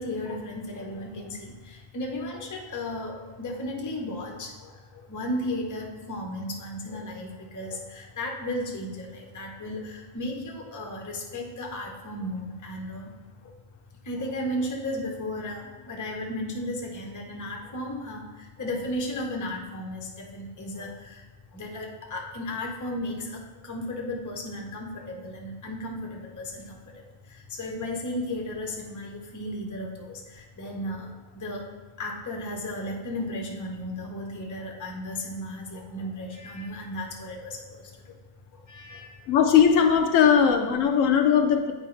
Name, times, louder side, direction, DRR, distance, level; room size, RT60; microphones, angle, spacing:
voice 1, 0.0-13.1 13.4-13.6 14.0-21.2 21.5-31.6 32.0-38.1 38.5-39.3, left 1 dB, 20° left, 0 dB, 0.6 m, -35 dB
voice 2, 39.3-41.7, left 7 dB, 75° left, 5 dB, 0.9 m, -19 dB
8.2 x 4.7 x 3.2 m, 1.2 s
omnidirectional pair, 1.4 m